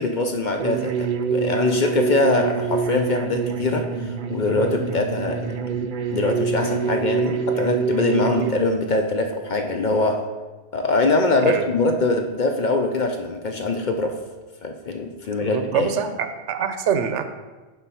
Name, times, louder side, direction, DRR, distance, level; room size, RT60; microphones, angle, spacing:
voice 1, 0.0-5.6 6.1-10.3 10.7-14.2 14.6-15.9, left 2 dB, 50° left, 4 dB, 0.6 m, -23 dB
sound 1, 0.6-8.5, right 6 dB, 60° right, 0.6 m, -26 dB
voice 2, 15.4-17.2, right 8 dB, 85° right, 8 dB, 0.9 m, -25 dB
7.0 x 4.1 x 5.5 m, 1.3 s
omnidirectional pair, 1.2 m